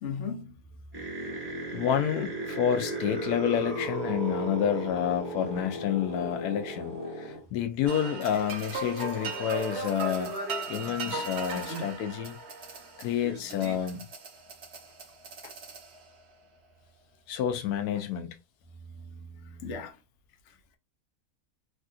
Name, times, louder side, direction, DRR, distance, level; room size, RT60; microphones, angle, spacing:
voice 1, 0.0-0.5 19.0-20.0, left 5 dB, 60° left, 1.0 m, -37 dB
sound 1, 0.9-7.4 7.9-8.5 9.2-11.9 12.5-12.6 12.8-12.9 13.2-13.9, right 1 dB, 15° right, 1.3 m, -36 dB
voice 2, 1.7-10.4 10.7-12.4 13.0-14.0 15.4-15.5 17.3-18.3, left 9 dB, 85° left, 1.1 m, -29 dB
sound 2, 7.9-16.2, right 3 dB, 50° right, 1.1 m, -38 dB
3.4 x 2.5 x 2.3 m
omnidirectional pair, 1.6 m